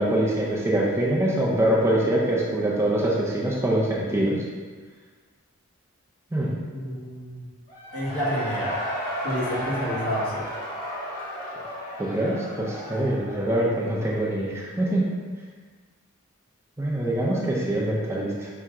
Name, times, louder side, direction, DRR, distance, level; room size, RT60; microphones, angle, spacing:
voice 1, 0.0-4.4 6.3-6.5 12.0-15.1 16.8-18.5, right 1 dB, 15° right, -5 dB, 0.5 m, -24 dB
voice 2, 6.7-7.5 7.9-8.7 9.2-10.4, equal, 70° left, -7 dB, 1.3 m, -29 dB
Cheering / Crowd, 7.7-14.4, equal, 40° left, 0.8 m, -34 dB
5.7 x 2.1 x 3.6 m, 1.5 s
head